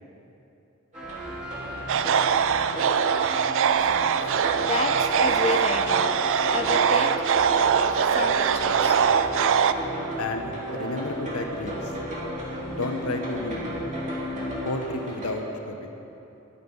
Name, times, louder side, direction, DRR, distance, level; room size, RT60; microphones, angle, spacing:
sound 1, 0.9-14.5, right 1 dB, 5° right, 2.1 m, -36 dB
sound 2, 0.9-15.3, equal, 35° right, 2.9 m, -36 dB
sound 3, 1.9-9.7, right 7 dB, 60° right, 0.4 m, -22 dB
voice 1, 4.5-6.2 6.5-7.1 8.1-9.0, left 3 dB, 30° left, 4 dB, 0.6 m, -30 dB
voice 2, 10.2-11.9 12.7-13.6 14.6-15.9, left 2 dB, 75° left, 5 dB, 1.1 m, -31 dB
14.5 x 10.0 x 5.5 m, 2.9 s
head